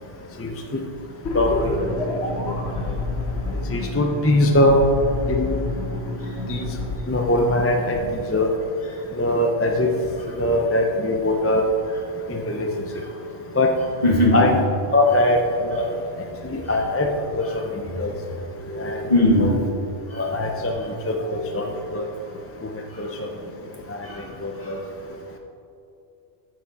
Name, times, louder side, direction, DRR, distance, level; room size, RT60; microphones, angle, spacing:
voice 1, 0.4-0.8 1.3-1.7 2.4-2.5 2.9-3.0 3.7-4.8 5.3-5.6 6.5-6.7 7.1-8.0 8.3-8.5 9.1-9.9 10.3-11.6 12.3-12.7 13.6-13.7 14.3-14.5 14.9-15.9 16.5-17.4 17.7-18.1 18.7-19.1 20.1-20.7 21.1-22.0 23.0-23.3 23.9-24.1 24.4-24.8, left 1 dB, 20° left, 2 dB, 0.4 m, -21 dB
sound 1, 1.2-7.0, left 2 dB, 90° left, 1.5 m, -27 dB
voice 2, 14.0-14.5 15.7-15.9 16.6-16.8 17.4-17.6 18.0-18.2 19.1-19.6 20.1-20.4 20.7-20.9 22.9-23.2 24.0-24.3 24.6-24.9, left 1 dB, 40° left, -3 dB, 1.8 m, -23 dB
8.9 x 7.2 x 4.1 m, 2.6 s
omnidirectional pair, 1.1 m